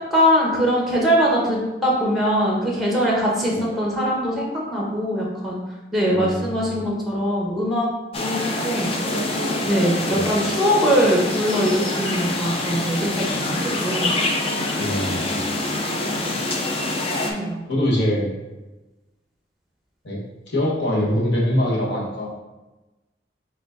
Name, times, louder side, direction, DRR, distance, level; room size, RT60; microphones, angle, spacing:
voice 1, 0.1-5.6 5.9-7.9 8.2-8.4 8.6-8.9 9.7-14.1 17.2-17.7, equal, ahead, -3 dB, 0.9 m, -22 dB
voice 2, 6.0-6.8 10.1-10.3 14.8-15.5 17.0-17.4 17.7-18.3 20.0-22.4, equal, 65° left, -3 dB, 1.1 m, -24 dB
sound 1, 8.1-17.3, left 2 dB, 30° left, 0.5 m, -25 dB
4.5 x 4.0 x 2.5 m, 1.1 s
head